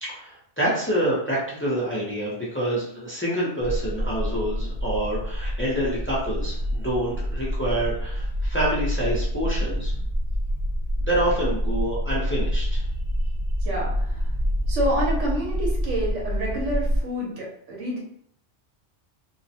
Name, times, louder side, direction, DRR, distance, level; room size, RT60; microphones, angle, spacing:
voice 1, 0.0-9.9 11.0-12.8, right 1 dB, 15° left, -7 dB, 0.4 m, -27 dB
sound 1, 3.6-17.0, equal, 55° left, 0.8 m, -27 dB
voice 2, 13.6-14.3 14.7-18.0, right 1 dB, 90° right, -3 dB, 1.0 m, -28 dB
2.3 x 2.0 x 2.7 m, 0.67 s
omnidirectional pair, 1.2 m